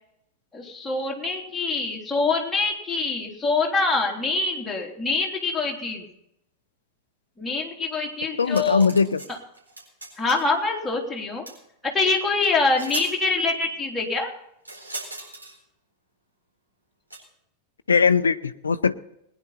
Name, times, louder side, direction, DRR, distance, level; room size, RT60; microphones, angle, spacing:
voice 1, 0.5-6.1 7.4-8.9 10.2-11.4 11.8-14.3, left 3 dB, 10° left, -2 dB, 3.5 m, -25 dB
voice 2, 8.4-9.2 17.9-19.1, left 5 dB, 75° left, 13 dB, 0.6 m, -20 dB
sound 1, 8.4-9.3 9.5-10.5 11.5-11.6 12.4-12.5 12.8-13.1 14.6-15.5 17.1-17.2, right 2 dB, 80° right, 4.2 m, -37 dB
21.0 x 10.5 x 4.2 m, 0.78 s
figure-of-eight pair, 90°, 0 cm